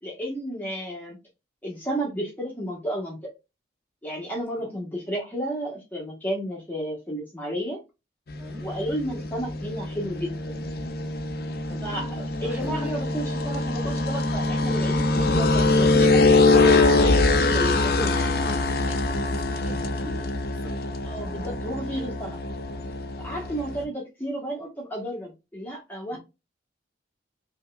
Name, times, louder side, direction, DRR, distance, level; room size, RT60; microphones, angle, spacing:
voice 1, 0.0-1.2 1.6-3.3 4.0-7.8 8.6-10.6 11.8-18.3 21.0-22.4 23.2-26.2, equal, 10° left, -2 dB, 1.0 m, -32 dB
sound 1, 8.3-23.8, left 3 dB, 60° left, 0.6 m, -23 dB
voice 2, 11.7-12.9 18.3-20.7 26.1-26.2, left 2 dB, 10° right, -1 dB, 1.2 m, -42 dB
5.4 x 2.8 x 2.2 m, 0.25 s
head